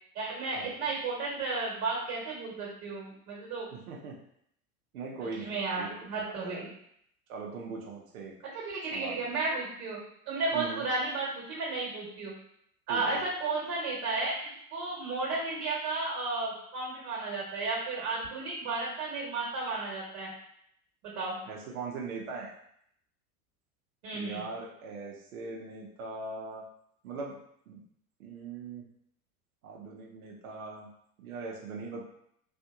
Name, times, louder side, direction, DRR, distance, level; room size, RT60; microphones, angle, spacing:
voice 1, 0.1-3.7 5.4-6.7 8.5-10.0 10.3-12.3 12.9-20.3 21.0-21.4 24.0-24.5, right 3 dB, 50° right, -3 dB, 1.4 m, -33 dB
voice 2, 3.7-4.1 4.9-6.6 7.3-8.4 8.9-9.2 10.5-10.8 12.9-13.2 21.5-22.5 24.1-26.6 27.0-27.4 27.7-27.8 28.2-28.8 29.6-30.9 31.2-32.0, right 4 dB, 70° right, -1 dB, 0.8 m, -40 dB
3.4 x 2.6 x 3.6 m, 0.71 s
figure-of-eight pair, 80°, 44 cm